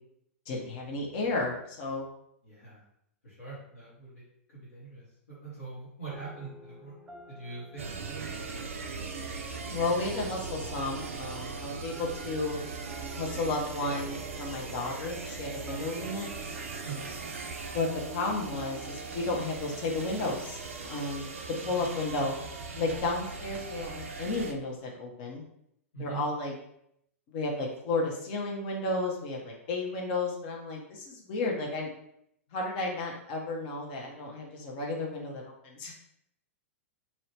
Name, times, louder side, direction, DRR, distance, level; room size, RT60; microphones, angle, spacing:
voice 1, 0.5-2.0 9.7-12.6 13.1-16.3 17.7-21.3 21.6-22.4 22.7-25.4 26.0-26.5 27.3-31.9 32.5-36.0, left 2 dB, 45° left, -1 dB, 0.8 m, -33 dB
voice 2, 2.4-2.8 3.2-6.9 7.3-8.3 16.8-17.1 21.6-21.9 22.8-23.0 25.9-26.2, right 4 dB, 65° left, -9 dB, 1.3 m, -43 dB
sound 1, 6.1-22.9, right 3 dB, 10° right, 0.4 m, -50 dB
sound 2, 7.8-24.5, right 4 dB, 65° right, 0.4 m, -39 dB
2.9 x 2.7 x 3.2 m, 0.74 s
figure-of-eight pair, 100°, 8 cm